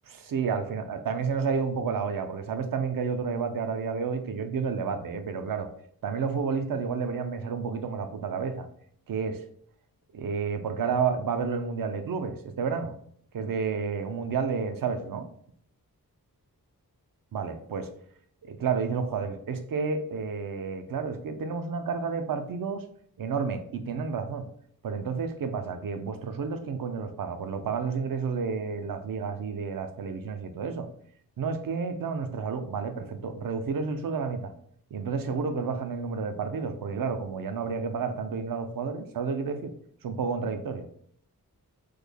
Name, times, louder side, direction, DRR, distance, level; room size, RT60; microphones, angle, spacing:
voice 1, 0.1-5.7 6.0-8.7 9.1-9.4 10.1-13.0 13.3-15.3 17.3-17.9 18.4-22.8 23.2-24.5 24.8-30.9 31.4-34.5 34.9-39.7 40.0-40.9, right 5 dB, 65° right, 8 dB, 0.5 m, -30 dB
3.2 x 2.2 x 3.5 m, 0.64 s
wide cardioid pair, 120°, 37 cm